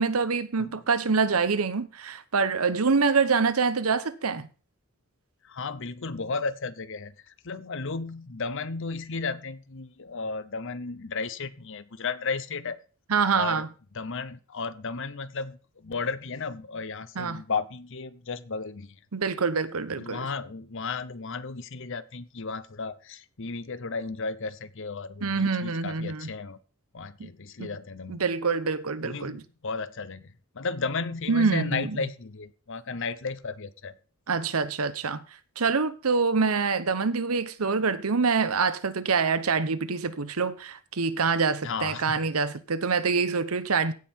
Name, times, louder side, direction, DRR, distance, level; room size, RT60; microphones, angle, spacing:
voice 1, 0.0-4.5 13.1-13.7 17.2-17.4 19.1-20.2 25.2-26.3 27.2-27.3 27.6-27.7 28.1-29.4 31.3-32.0 34.3-35.2 35.6-43.9, right 5 dB, 85° right, 0.9 m, -25 dB
voice 2, 5.4-12.8 13.4-13.7 13.9-19.0 20.0-26.6 26.9-28.2 29.0-34.0 41.6-42.3, left 4 dB, 60° left, 0.8 m, -34 dB
16.0 x 5.7 x 4.5 m
head